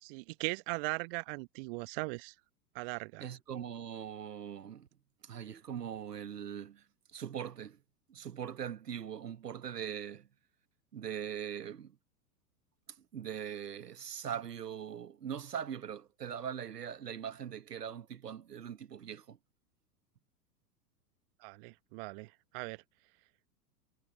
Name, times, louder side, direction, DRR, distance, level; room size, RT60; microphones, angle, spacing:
voice 1, 0.0-2.3 2.7-3.3 21.4-22.8, right 29 dB, 35° right, 1.0 m, -39 dB
voice 2, 3.2-4.9 5.2-6.8 7.1-7.8 8.1-10.3 10.9-12.0 13.1-19.4, right 8 dB, 70° right, 1.2 m, -41 dB
figure-of-eight pair, 100°, 49 cm